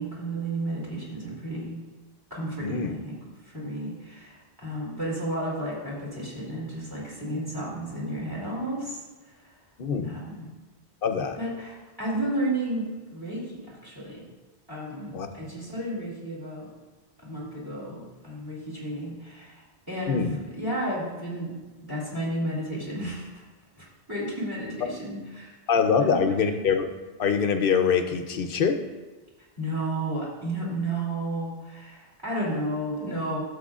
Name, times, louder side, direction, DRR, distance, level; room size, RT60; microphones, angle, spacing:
voice 1, 0.0-1.8 2.3-3.1 3.5-9.0 9.2-9.5 10.0-10.5 11.4-14.3 14.7-16.7 17.2-23.4 23.8-25.5 26.0-26.6 29.6-33.4, right 1 dB, 20° right, -5 dB, 2.6 m, -32 dB
voice 2, 2.6-3.0 9.8-10.1 11.0-11.4 15.1-15.3 20.1-20.4 25.7-26.9 27.2-28.8, left 6 dB, 60° left, 7 dB, 0.9 m, -24 dB
12.0 x 7.3 x 2.4 m, 1.2 s
omnidirectional pair, 1.1 m